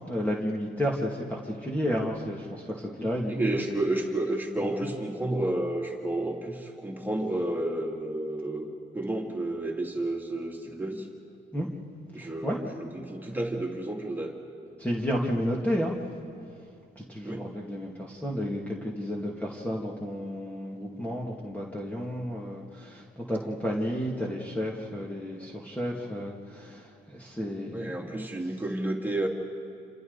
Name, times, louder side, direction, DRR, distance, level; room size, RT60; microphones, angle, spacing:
voice 1, 0.1-3.5 4.6-4.7 11.5-11.7 12.2-12.6 14.8-16.0 17.0-26.9 27.1-27.7, equal, 5° left, -3 dB, 2.4 m, -32 dB
voice 2, 3.0-8.7 8.9-11.1 12.1-14.3 14.6-14.7 17.2-17.5 27.7-29.3, right 1 dB, 10° right, -1 dB, 2.9 m, -31 dB
28.0 x 27.0 x 4.1 m, 2.5 s
cardioid pair, 90°, 20 cm